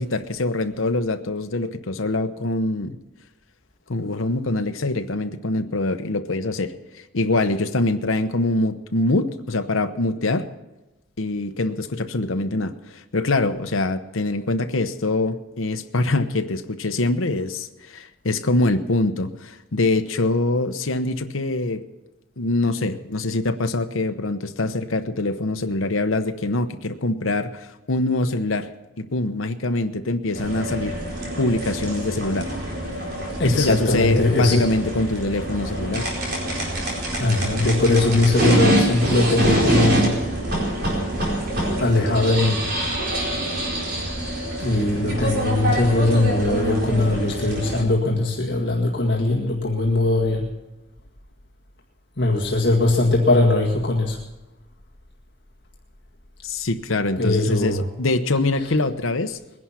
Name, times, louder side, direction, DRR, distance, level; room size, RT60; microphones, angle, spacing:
voice 1, 0.0-3.0 3.9-10.5 11.2-21.8 22.4-28.7 29.0-31.0 31.4-32.5 33.4-36.1 56.4-59.4, left 2 dB, 85° left, 8 dB, 1.0 m, -24 dB
sound 1, 30.3-47.8, right 1 dB, 50° right, 4.5 m, -25 dB
voice 2, 33.4-34.7 37.2-40.1 41.8-42.7 44.6-50.5 52.2-54.2 57.2-57.8, left 2 dB, 55° left, -2 dB, 1.9 m, -20 dB
21.0 x 11.0 x 5.8 m, 1.0 s
head